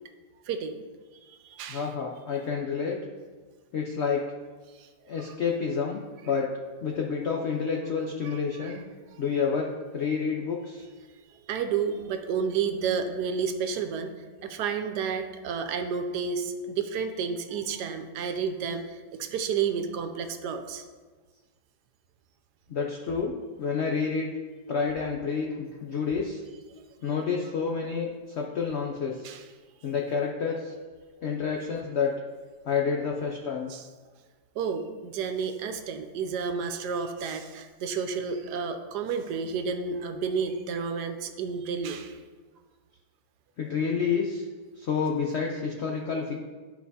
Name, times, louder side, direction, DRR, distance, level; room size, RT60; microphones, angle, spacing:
voice 1, 0.5-0.8 1.2-1.9 4.8-4.9 5.2-5.3 8.2-8.8 9.1-9.2 11.5-14.1 14.4-20.8 29.2-29.5 33.7-33.9 34.6-42.2, right 6 dB, 75° right, 7 dB, 1.1 m, -31 dB
voice 2, 1.7-3.0 3.7-4.2 5.1-6.5 6.8-8.8 9.2-10.9 22.7-24.3 24.7-26.4 27.0-29.2 29.8-30.7 31.2-32.1 32.6-33.7 43.6-44.5 44.8-46.4, left 5 dB, 75° left, 0 dB, 0.6 m, -29 dB
11.0 x 4.5 x 2.7 m, 1.4 s
omnidirectional pair, 1.9 m